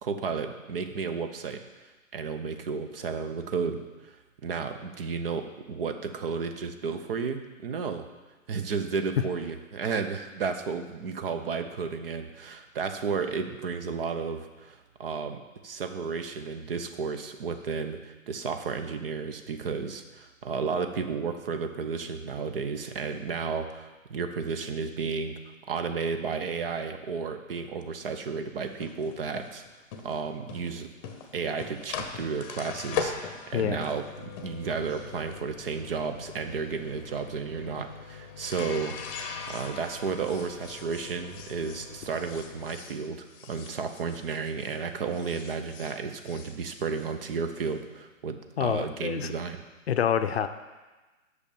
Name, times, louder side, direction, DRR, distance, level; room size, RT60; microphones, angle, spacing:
voice 1, 0.0-1.6 2.1-4.2 4.4-8.0 8.5-25.3 25.7-29.6 30.0-30.9 31.3-49.6, right 5 dB, 45° right, 8 dB, 0.9 m, -33 dB
sound 1, 28.6-44.8 45.1-47.7, left 6 dB, 25° left, 0.9 m, -41 dB
voice 2, 48.6-49.3 49.9-50.5, left 8 dB, 50° left, 9 dB, 0.7 m, -27 dB
8.3 x 6.4 x 7.2 m, 1.2 s
figure-of-eight pair, 135°, 41 cm